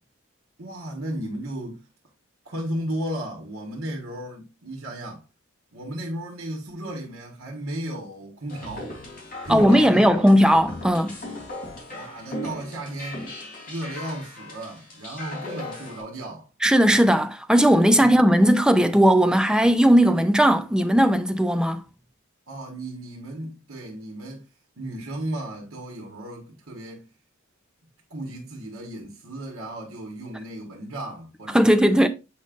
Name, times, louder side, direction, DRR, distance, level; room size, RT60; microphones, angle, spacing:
voice 1, 0.6-1.9 2.4-5.2 5.7-9.0 9.4-10.1 11.9-13.3 13.7-16.5 18.0-18.3 22.5-24.4 24.8-27.1 28.1-32.1, right 1 dB, 70° right, 1.5 m, -34 dB
sound 1, 8.5-16.0, left 1 dB, 45° left, 3.4 m, -37 dB
voice 2, 9.5-11.2 16.6-21.8 31.5-32.1, equal, 5° right, 0.5 m, -17 dB
8.2 x 5.3 x 2.5 m
head